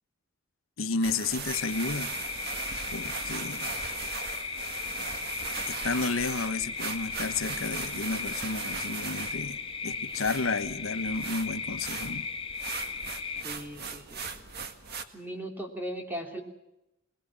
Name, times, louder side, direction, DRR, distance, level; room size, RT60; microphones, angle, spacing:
voice 1, 0.8-2.1 2.9-3.7 5.7-12.3, left 3 dB, 80° left, 1.1 m, -32 dB
sound 1, 1.0-15.0, right 5 dB, 50° right, 1.8 m, -39 dB
sound 2, 1.5-13.4, left 5 dB, 25° left, 1.6 m, -36 dB
voice 2, 13.4-14.5 15.1-16.4, equal, 10° right, 3.2 m, -38 dB
24.0 x 20.0 x 6.2 m
head